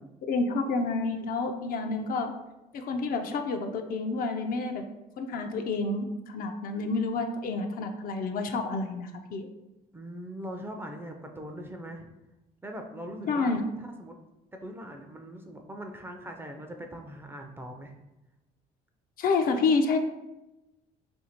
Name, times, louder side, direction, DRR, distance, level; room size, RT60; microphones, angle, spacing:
voice 1, 0.2-2.3 2.7-4.8 5.2-9.5 13.3-13.6 19.2-20.0, left 3 dB, 60° left, 6 dB, 0.4 m, -29 dB
voice 2, 9.9-12.1 12.6-14.1 14.6-17.9, equal, 15° right, 3 dB, 0.4 m, -41 dB
2.8 x 2.6 x 4.3 m, 0.99 s
cardioid pair, 110°, 17 cm